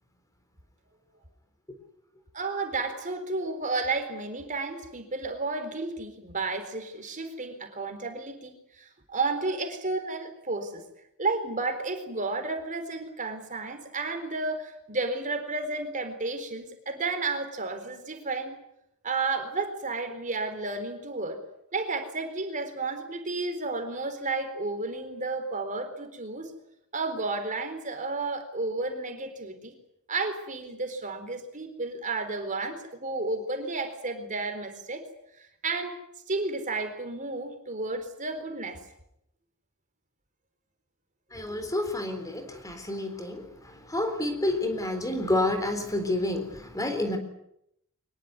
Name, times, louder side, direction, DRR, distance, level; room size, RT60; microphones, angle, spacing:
voice 1, 2.3-10.8 11.2-18.6 19.0-21.4 21.7-26.5 26.9-29.7 30.1-35.0 35.6-36.0 36.3-38.8, right 3 dB, 35° right, 7 dB, 4.1 m, -32 dB
voice 2, 41.3-47.2, left 1 dB, 15° left, 7 dB, 3.9 m, -29 dB
24.0 x 21.5 x 9.6 m, 0.78 s
head